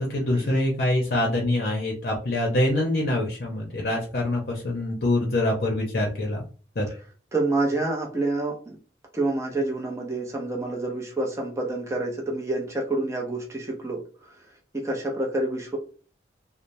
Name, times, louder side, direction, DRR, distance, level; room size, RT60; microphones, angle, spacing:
voice 1, 0.0-6.4 6.8-6.9, left 1 dB, 55° left, -1 dB, 0.6 m, -25 dB
voice 2, 7.3-8.8 9.1-14.4 14.7-15.8, right 2 dB, 15° right, 0 dB, 0.6 m, -28 dB
3.1 x 2.0 x 2.5 m, 0.38 s
head